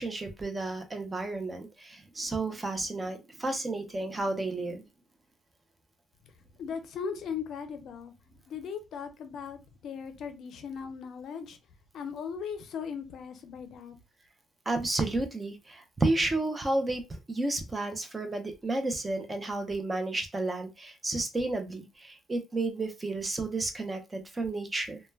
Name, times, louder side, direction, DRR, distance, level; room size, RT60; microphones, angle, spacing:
voice 1, 0.0-4.8 14.7-17.0 17.3-25.0, right 2 dB, 20° right, 0.5 m, -32 dB
voice 2, 6.6-8.1 8.5-11.6 11.9-14.0, left 6 dB, 65° left, 0.4 m, -38 dB
2.1 x 2.1 x 3.2 m
cardioid pair, 110°, 0 cm